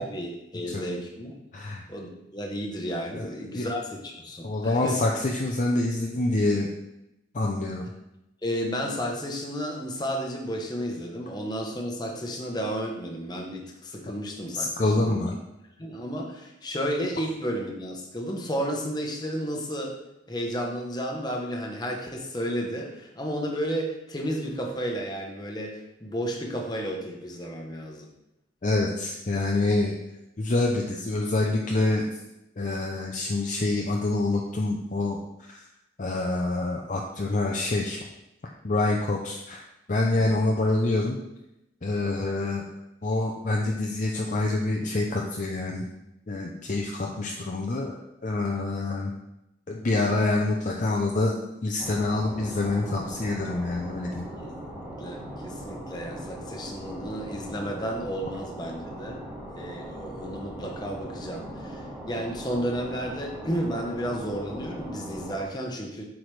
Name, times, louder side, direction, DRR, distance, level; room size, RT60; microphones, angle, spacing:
voice 1, 0.0-1.3 1.6-5.0 8.4-15.2 15.8-20.0 20.3-28.1 40.1-40.4 54.4-59.2 59.5-66.0, equal, 20° left, 1 dB, 0.9 m, -32 dB
voice 2, 3.1-3.7 4.4-6.7 7.3-7.9 14.5-15.4 28.6-30.0 30.4-32.0 32.6-35.2 35.5-35.6 36.0-38.0 38.6-39.6 39.9-41.2 41.8-42.7 43.0-45.8 46.3-49.1 49.7-51.4 51.6-54.3, left 2 dB, 40° left, 0 dB, 0.5 m, -26 dB
sound 1, 51.8-65.4, equal, 10° right, 1.6 m, -39 dB
8.0 x 4.7 x 3.3 m, 0.89 s
head